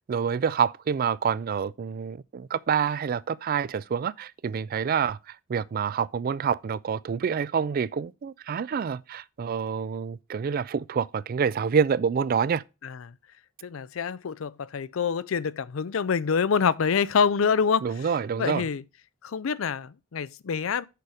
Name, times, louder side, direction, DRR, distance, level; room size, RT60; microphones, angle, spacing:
voice 1, 0.1-12.6 17.8-18.7, right 6 dB, 45° right, 0.3 m, -27 dB
voice 2, 13.6-17.9 18.4-18.8 19.2-20.9, left 6 dB, 85° left, 0.5 m, -26 dB
6.8 x 4.9 x 6.1 m
head